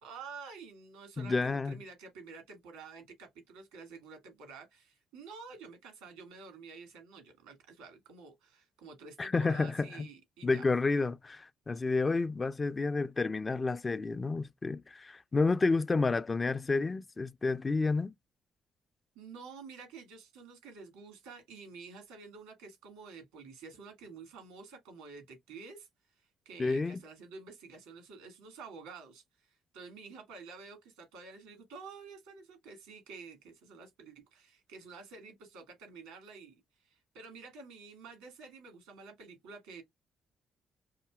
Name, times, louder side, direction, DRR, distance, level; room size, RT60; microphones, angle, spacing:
voice 1, 0.0-10.6 19.1-25.9 26.1-39.8, right 4 dB, 90° right, 1.7 m, -50 dB
voice 2, 1.2-1.8 9.2-10.1 10.4-18.1 26.6-27.0, left 3 dB, 35° left, 0.3 m, -30 dB
5.7 x 2.7 x 2.3 m
hypercardioid pair, 50°, 0 cm